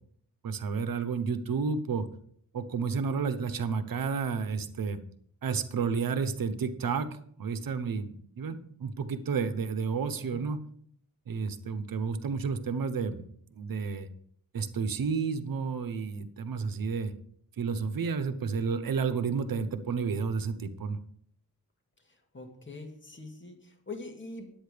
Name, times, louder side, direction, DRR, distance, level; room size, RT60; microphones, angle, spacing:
voice 1, 0.4-2.1 2.5-5.0 5.4-10.6 11.3-14.1 14.5-17.1 17.6-21.0, right 5 dB, 70° right, 12 dB, 1.1 m, -31 dB
voice 2, 22.0-24.5, left 3 dB, 35° left, 3 dB, 2.3 m, -44 dB
10.5 x 8.9 x 5.1 m, 0.63 s
cardioid pair, 80°, 35 cm